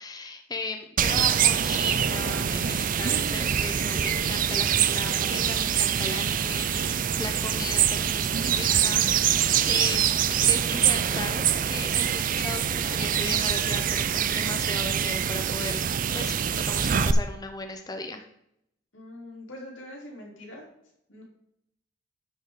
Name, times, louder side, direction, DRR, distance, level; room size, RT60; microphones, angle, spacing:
voice 1, 0.0-15.8 16.1-18.2, left 2 dB, 20° left, 6 dB, 0.7 m, -37 dB
sound 1, 1.0-17.1, right 8 dB, 45° right, 0.5 m, -25 dB
voice 2, 18.9-20.6 21.1-21.2, left 1 dB, 90° left, -2 dB, 3.3 m, -43 dB
9.9 x 6.9 x 3.7 m, 0.76 s
head